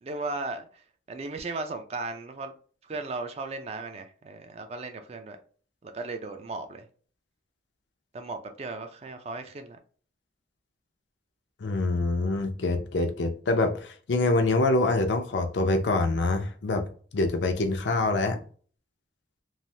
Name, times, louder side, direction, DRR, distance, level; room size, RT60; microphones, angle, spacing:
voice 1, 0.0-2.5 2.8-5.4 5.8-6.9 8.1-9.8, right 3 dB, 35° right, 0.3 m, -36 dB
voice 2, 11.6-16.8 17.1-18.4, left 2 dB, 70° left, 0.5 m, -25 dB
3.1 x 2.0 x 2.6 m
head